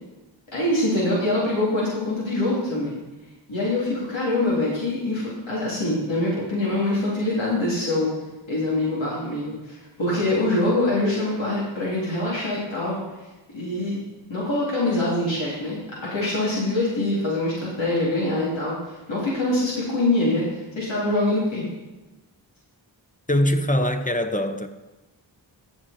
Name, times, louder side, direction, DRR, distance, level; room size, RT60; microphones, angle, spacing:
voice 1, 0.5-3.0 3.5-8.1 8.5-13.0 13.5-14.0 14.3-21.7, left 2 dB, 75° left, 3.2 m, -24 dB
voice 2, 23.3-24.7, left 1 dB, 15° left, 0.9 m, -22 dB
14.0 x 6.5 x 4.3 m
cardioid pair, 50°, 46 cm